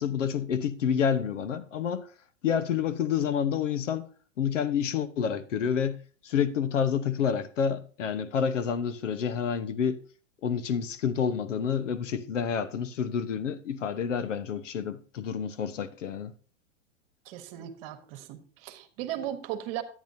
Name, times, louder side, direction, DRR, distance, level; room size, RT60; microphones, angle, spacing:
voice 1, 0.0-2.1 2.4-4.1 4.4-6.0 6.2-10.0 10.4-16.3, left 7 dB, 75° left, 0.9 m, -28 dB
voice 2, 17.2-19.8, right 11 dB, 50° right, 1.2 m, -37 dB
10.0 x 9.3 x 2.7 m
hypercardioid pair, 105°, 38 cm